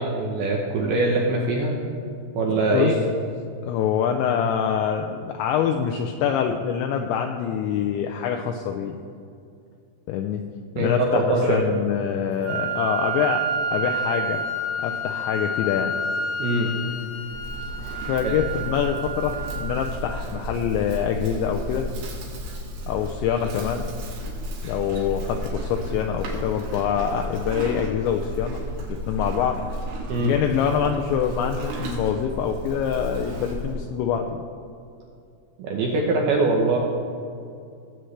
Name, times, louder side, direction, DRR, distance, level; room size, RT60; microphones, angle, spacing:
voice 1, 0.0-1.7 2.4-3.0 10.8-11.8 16.4-16.7 18.2-18.3 30.1-30.4 35.6-36.8, right 2 dB, 80° right, -1 dB, 2.2 m, -22 dB
voice 2, 2.5-3.0 3.7-9.0 10.1-10.4 10.8-13.4 13.7-14.4 14.8-15.9 17.8-21.9 22.9-23.9 24.6-28.6 28.9-29.6 30.2-34.4, left 8 dB, 85° left, 3 dB, 2.6 m, -25 dB
Wind instrument woodwind instrument, 12.4-20.4, right 1 dB, 65° left, 2.5 m, -29 dB
Livestock farm animals working animals, 17.3-33.8, equal, 60° right, 3.3 m, -33 dB
19.0 x 7.7 x 3.3 m, 2.5 s
omnidirectional pair, 5.7 m